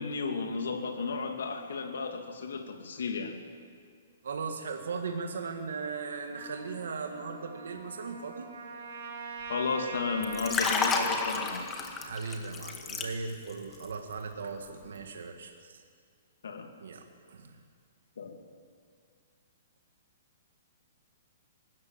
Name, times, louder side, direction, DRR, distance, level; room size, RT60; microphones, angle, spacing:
voice 1, 0.0-3.4 9.5-11.9 16.4-16.7 18.2-18.4, left 4 dB, 85° left, 4 dB, 2.6 m, -34 dB
voice 2, 4.2-8.5 12.0-15.8 16.8-17.6, right 4 dB, 85° right, 4 dB, 1.9 m, -38 dB
Trumpet, 6.3-10.9, right 4 dB, 65° right, 4.9 m, -43 dB
Liquid, 10.2-13.5 13.8-14.1, left 4 dB, 15° left, 1.8 m, -31 dB
22.5 x 13.5 x 9.1 m, 2.1 s
hypercardioid pair, 155°, 0 cm